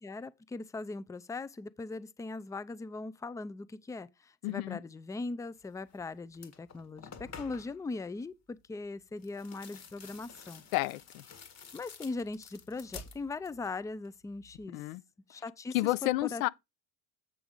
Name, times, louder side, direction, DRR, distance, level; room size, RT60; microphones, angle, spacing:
voice 1, 0.0-10.6 11.7-14.8 15.3-15.8 16.0-16.5, left 3 dB, 10° left, 0.5 m, -40 dB
voice 2, 4.4-4.8 10.7-11.2 14.7-15.0 15.7-16.5, left 18 dB, 85° left, 0.6 m, -30 dB
sound 1, 5.9-6.0 6.3-7.8 9.2-13.8 14.0-14.6, left 5 dB, 40° left, 1.8 m, -50 dB
8.2 x 3.5 x 6.3 m
supercardioid pair, 90°, 41 cm